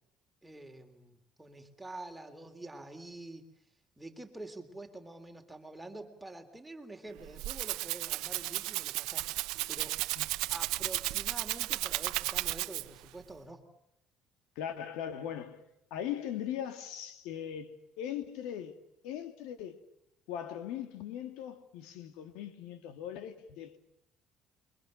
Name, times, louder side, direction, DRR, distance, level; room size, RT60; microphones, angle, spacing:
voice 1, 0.4-3.5 4.0-10.0 10.5-13.7, right 2 dB, 10° right, 3.4 m, -47 dB
Rattle (instrument), 7.1-13.1, right 19 dB, 85° right, 0.9 m, -34 dB
voice 2, 14.6-15.6 15.9-18.7 19.0-19.8 20.3-23.8, left 10 dB, 90° left, 2.2 m, -39 dB
29.0 x 23.5 x 6.5 m
cardioid pair, 115°, 0 cm